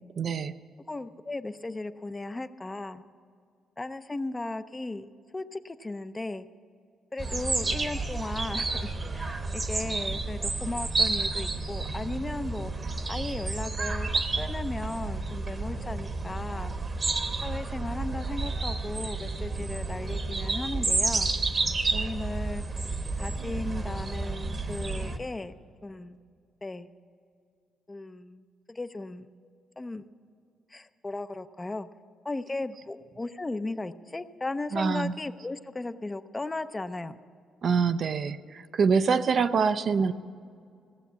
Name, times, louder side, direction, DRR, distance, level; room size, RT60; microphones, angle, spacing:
voice 1, 0.2-0.5 34.7-35.1 37.6-40.1, right 5 dB, 55° right, 11 dB, 0.5 m, -25 dB
voice 2, 0.9-3.0 3.8-5.1 5.3-6.5 7.1-14.1 14.4-17.0 17.4-21.3 21.9-22.6 23.2-25.5 25.8-26.2 26.6-26.9 27.9-28.4 28.7-29.3 29.8-30.0 30.7-31.9 32.2-37.2, left 2 dB, 20° left, 11 dB, 0.5 m, -36 dB
sound 1, 7.2-25.2, right 3 dB, 30° right, 1.0 m, -30 dB
16.5 x 7.1 x 8.1 m, 2.3 s
cardioid pair, 90°, 0 cm